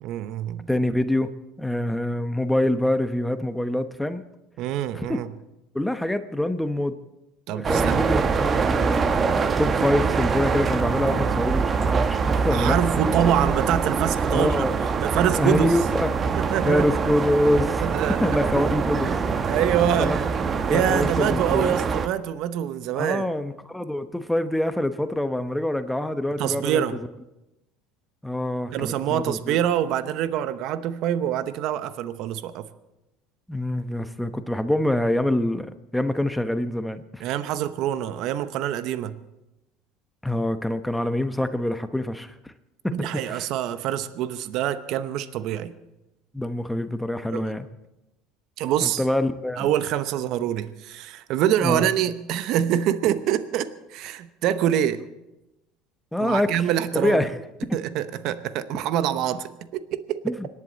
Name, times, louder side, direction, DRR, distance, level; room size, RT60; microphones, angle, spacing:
voice 1, 0.0-0.7 4.6-5.3 7.5-8.1 12.5-14.7 15.0-15.8 16.3-17.0 17.8-18.4 19.5-20.2 20.7-23.2 26.4-27.0 28.7-32.7 37.2-39.2 42.9-45.7 47.3-47.5 48.6-49.0 49.6-55.0 56.2-57.2 57.7-60.3, right 10 dB, 60° right, 12 dB, 0.9 m, -25 dB
voice 2, 0.7-1.3 1.6-4.2 4.9-5.2 5.7-7.0 7.5-12.8 14.3-14.7 15.4-16.1 16.7-17.9 18.2-19.6 20.0-20.2 20.7-21.8 23.0-26.8 28.2-29.6 33.5-37.2 40.2-42.5 42.8-43.5 46.3-47.7 48.8-49.7 51.6-51.8 56.1-56.5 56.9-57.4 57.7-57.8 60.2-60.5, left 1 dB, 5° left, 10 dB, 1.0 m, -25 dB
sound 1, 7.6-22.1, right 5 dB, 35° right, 1.1 m, -24 dB
25.5 x 11.0 x 4.1 m, 0.95 s
hypercardioid pair, 85°, 0 cm